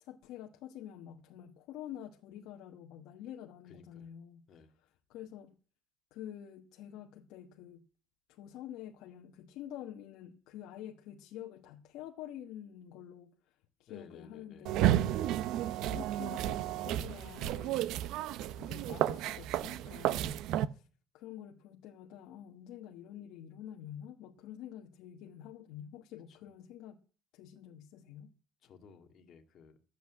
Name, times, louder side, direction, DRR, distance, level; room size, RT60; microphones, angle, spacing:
voice 1, 0.0-4.4 4.8-5.6 6.1-7.8 8.3-18.0 18.6-20.9 21.1-27.0 27.3-28.3, left 11 dB, 80° left, 1.2 m, -48 dB
voice 2, 3.7-4.1 4.5-4.7 13.9-14.7 26.3-26.4 28.6-29.8, left 6 dB, 45° left, 2.1 m, -56 dB
sound 1, 14.7-20.7, right 12 dB, 70° right, 0.7 m, -32 dB
13.0 x 8.2 x 8.5 m
cardioid pair, 160°, 0 cm